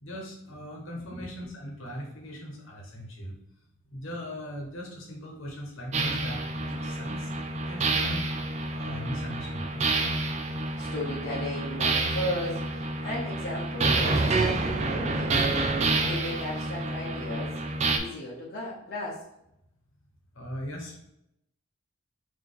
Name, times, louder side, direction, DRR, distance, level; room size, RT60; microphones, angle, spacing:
voice 1, 0.0-3.4 3.9-7.3 7.7-8.3 8.7-10.0 20.3-21.1, equal, 65° left, 0 dB, 1.1 m, -39 dB
sound 1, 5.9-18.0, right 3 dB, 30° right, 0.4 m, -28 dB
voice 2, 10.8-17.6 17.9-19.2, left 1 dB, 45° left, -6 dB, 0.9 m, -36 dB
3.8 x 2.9 x 3.9 m, 0.80 s
head